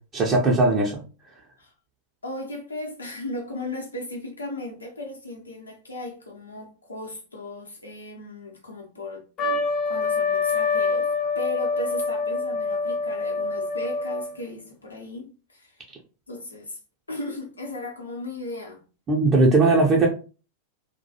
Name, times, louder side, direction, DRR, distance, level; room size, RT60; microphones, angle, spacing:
voice 1, 0.1-1.0 19.1-20.1, right 2 dB, 25° right, 0.5 m, -19 dB
voice 2, 2.2-15.8 16.3-16.8 17.1-18.8, left 1 dB, 80° left, 0.7 m, -36 dB
Trumpet, 9.4-14.4, left 4 dB, 30° left, 0.4 m, -25 dB
2.2 x 2.1 x 2.7 m
figure-of-eight pair, 90°, 0 cm